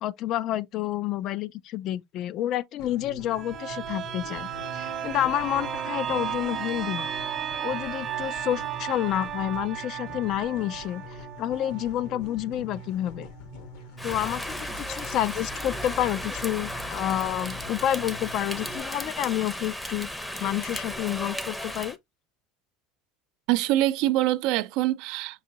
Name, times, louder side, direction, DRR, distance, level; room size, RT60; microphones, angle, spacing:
voice 1, 0.0-7.1 7.6-13.3 14.0-20.1 20.4-22.0, left 12 dB, 55° left, 0.3 m, -29 dB
sound 1, 2.8-18.8, left 1 dB, 75° left, 1.1 m, -44 dB
sound 2, 3.3-12.9 13.2-13.3, right 9 dB, 40° right, 0.7 m, -34 dB
Rain, 14.0-22.0, left 1 dB, 10° left, 0.6 m, -35 dB
voice 2, 23.5-25.4, right 15 dB, 70° right, 0.4 m, -24 dB
5.4 x 2.8 x 2.7 m
supercardioid pair, 115°, 0 cm